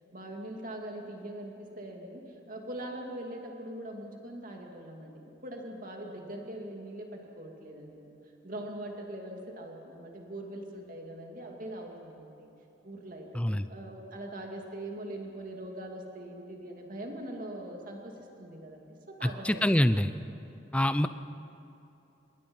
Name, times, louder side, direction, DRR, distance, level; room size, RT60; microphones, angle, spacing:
voice 1, 0.1-12.5 12.8-13.4 13.7-19.8, right 1 dB, 45° right, 1 dB, 2.5 m, -42 dB
voice 2, 13.3-13.7 19.2-20.1 20.7-21.1, left 1 dB, 5° left, 11 dB, 0.5 m, -25 dB
26.0 x 21.0 x 5.5 m, 2.9 s
head